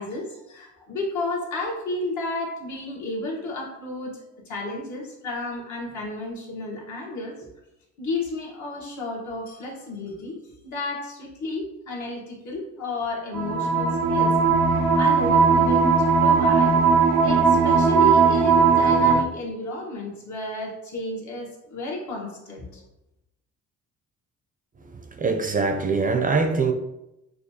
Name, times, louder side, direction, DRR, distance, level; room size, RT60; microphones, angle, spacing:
voice 1, 0.0-4.2 4.5-7.4 8.0-10.3 10.6-14.4 14.7-16.8 17.2-22.8, left 2 dB, 70° left, 1.4 m, -32 dB
sound 1, 13.3-19.2, right 5 dB, 85° right, 0.5 m, -18 dB
voice 2, 24.8-26.7, right 4 dB, 30° right, 0.5 m, -23 dB
6.6 x 2.4 x 2.8 m
cardioid pair, 90°, 30 cm